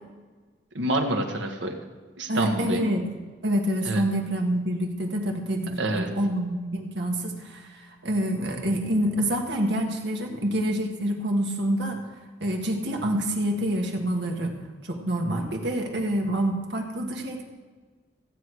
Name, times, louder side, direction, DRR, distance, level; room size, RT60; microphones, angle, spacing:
voice 1, 0.7-1.7 2.2-2.8 3.8-4.0 5.8-6.1, right 1 dB, 85° right, 3 dB, 1.5 m, -27 dB
voice 2, 2.3-3.1 3.4-12.0 12.4-14.6 14.8-17.4, right 1 dB, 65° right, 2 dB, 1.7 m, -27 dB
15.0 x 8.4 x 4.8 m, 1.4 s
head